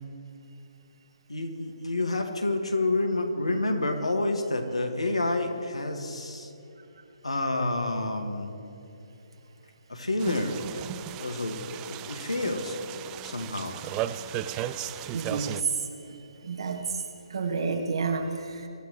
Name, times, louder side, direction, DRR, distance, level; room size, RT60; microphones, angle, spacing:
voice 1, 1.3-6.5 7.2-8.5 9.9-10.8 11.2-12.8 13.2-13.8, left 2 dB, 85° left, 4 dB, 1.9 m, -29 dB
sound 1, 10.2-15.6, right 11 dB, 20° right, 0.4 m, -36 dB
voice 2, 15.1-17.0 17.3-18.7, right 4 dB, 60° right, 4 dB, 1.7 m, -30 dB
24.0 x 13.5 x 3.2 m, 2.8 s
figure-of-eight pair, 140°, 3 cm